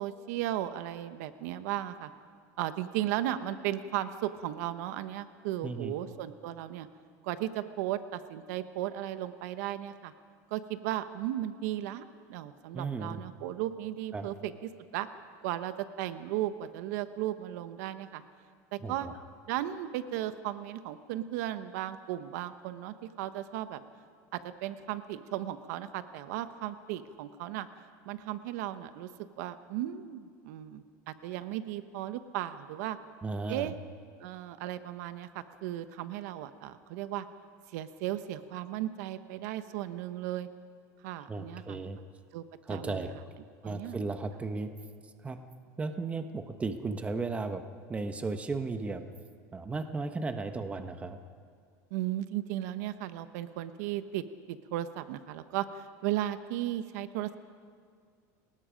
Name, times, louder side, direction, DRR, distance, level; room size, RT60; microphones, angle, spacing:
voice 1, 0.0-2.1 2.6-6.9 7.2-10.1 10.5-12.0 12.3-15.1 15.4-18.2 18.7-19.1 19.5-23.8 24.3-27.7 28.0-29.1 29.4-33.0 33.5-33.7 34.2-37.3 37.7-40.5 41.0-41.8 42.3-42.4 42.7-43.1 43.6-44.0 51.9-57.4, right 13 dB, 75° right, 11 dB, 1.1 m, -35 dB
voice 2, 5.6-5.9 12.7-13.2 14.1-14.3 18.8-19.1 33.2-33.7 41.3-42.0 42.7-43.1 43.6-44.7 45.2-45.4 45.8-47.6 47.9-49.0 49.5-51.2, right 3 dB, 15° right, 7 dB, 1.2 m, -35 dB
29.5 x 20.0 x 5.2 m, 2.1 s
supercardioid pair, 145°, 9 cm